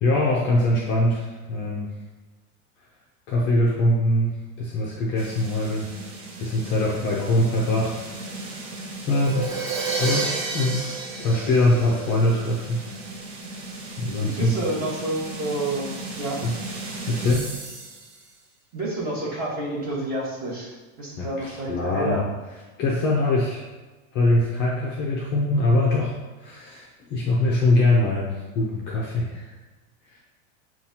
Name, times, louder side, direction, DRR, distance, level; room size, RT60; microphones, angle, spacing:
voice 1, 0.0-1.9 3.3-4.3 4.6-6.0 6.4-8.6 9.1-9.7 10.0-10.9 11.2-12.9 14.0-14.5 16.4-16.6 17.1-17.5 21.2-22.2 22.8-23.6 24.1-26.1 26.4-29.5 30.1-30.2, left 1 dB, 30° left, -4 dB, 0.5 m, -23 dB
sound 1, 5.2-18.4, right 2 dB, 45° right, 0.9 m, -38 dB
Crash cymbal, 9.1-12.9, right 4 dB, 90° right, 1.2 m, -30 dB
voice 2, 14.2-16.4 18.7-20.7 21.0-22.3, right 1 dB, 25° right, -7 dB, 1.4 m, -29 dB
7.2 x 2.4 x 2.8 m, 1.2 s
supercardioid pair, 165°, 39 cm